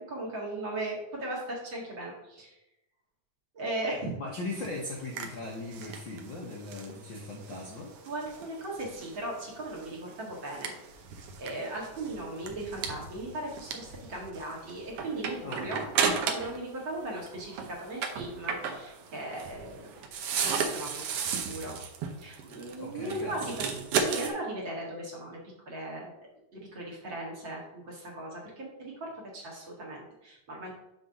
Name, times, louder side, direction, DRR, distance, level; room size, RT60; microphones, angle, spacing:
voice 1, 0.1-2.6 3.5-4.1 8.1-10.7 11.4-15.8 16.2-19.9 20.4-21.8 22.2-23.7 23.9-25.4 25.7-26.1 26.5-30.7, right 1 dB, 45° right, -3 dB, 2.2 m, -38 dB
voice 2, 4.2-7.9 15.4-15.7 22.8-23.4, left 2 dB, 60° left, -2 dB, 1.2 m, -39 dB
sound 1, 4.5-16.7 16.9-24.3, right 6 dB, 65° right, 1.5 m, -35 dB
6.8 x 3.9 x 6.4 m, 0.91 s
omnidirectional pair, 3.4 m